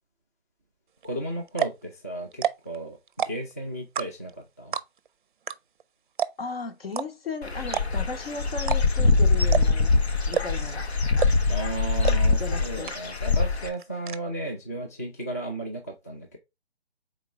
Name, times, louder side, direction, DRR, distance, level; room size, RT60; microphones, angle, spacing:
voice 1, 1.0-3.0 3.2-4.7 11.5-16.4, right 2 dB, 15° left, 0.4 m, -34 dB
sound 1, 1.0-1.1 1.5-1.8 2.3-2.8 3.1-3.5 4.0-4.3 4.7-5.1 5.5-5.6 5.8-5.9 6.2-6.5 6.9-7.1 7.7-8.1 8.6-9.1 9.5-9.8 10.3-10.7 11.2-11.5 12.0-12.2 12.5-12.6 12.9-13.3 13.6-14.2, right 8 dB, 50° right, 0.4 m, -28 dB
voice 2, 6.4-9.9 10.3-10.8 12.4-12.9, left 3 dB, 65° left, 1.1 m, -35 dB
Dog / Bird, 7.4-13.7, left 4 dB, 90° left, 0.9 m, -23 dB
4.0 x 3.8 x 3.1 m
figure-of-eight pair, 145°, 32 cm